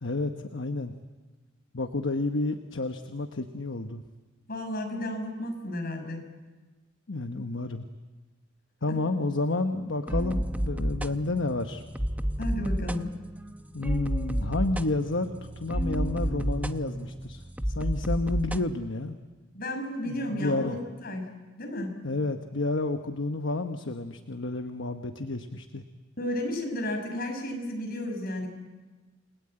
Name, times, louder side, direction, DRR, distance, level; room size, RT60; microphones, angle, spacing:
voice 1, 0.0-0.9 1.7-4.0 7.1-7.8 8.8-11.8 13.7-19.2 20.0-20.8 22.0-25.8, left 2 dB, 65° left, 7 dB, 1.1 m, -30 dB
voice 2, 4.5-6.2 8.9-9.0 12.4-13.1 19.5-21.3 21.6-22.0 26.2-28.5, left 1 dB, 50° left, 3 dB, 5.9 m, -33 dB
sound 1, 10.1-18.6, equal, 10° right, 0.7 m, -31 dB
29.0 x 20.5 x 8.9 m, 1.3 s
head